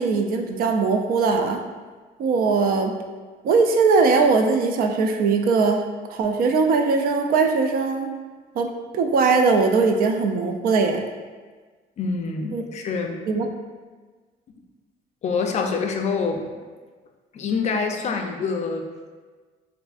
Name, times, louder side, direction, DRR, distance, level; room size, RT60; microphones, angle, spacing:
voice 1, 0.0-1.6 2.2-3.0 3.4-8.1 8.6-11.0 12.5-12.6 13.3-13.5, right 4 dB, 60° right, 5 dB, 0.4 m, -20 dB
voice 2, 12.0-13.2 15.2-16.4 17.3-18.9, left 4 dB, 40° left, 3 dB, 0.4 m, -26 dB
4.2 x 2.5 x 2.4 m, 1.4 s
cardioid pair, 110°, 17 cm